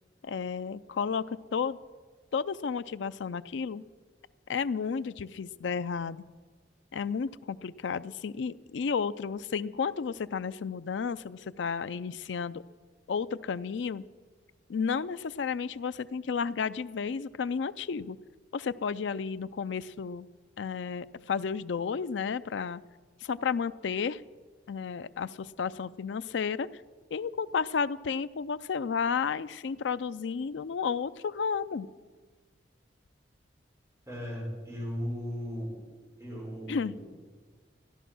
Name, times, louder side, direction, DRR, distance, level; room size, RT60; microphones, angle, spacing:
voice 1, 0.2-1.8 2.3-3.8 4.5-6.2 6.9-12.6 13.1-14.0 14.7-18.2 18.5-20.3 20.6-22.8 23.2-24.2 24.7-26.7 27.1-31.9 36.7-36.9, left 6 dB, 80° left, 14 dB, 0.4 m, -32 dB
voice 2, 34.1-35.8 36.2-37.2, equal, 15° right, -5 dB, 5.4 m, -37 dB
14.0 x 11.0 x 6.2 m, 1.4 s
head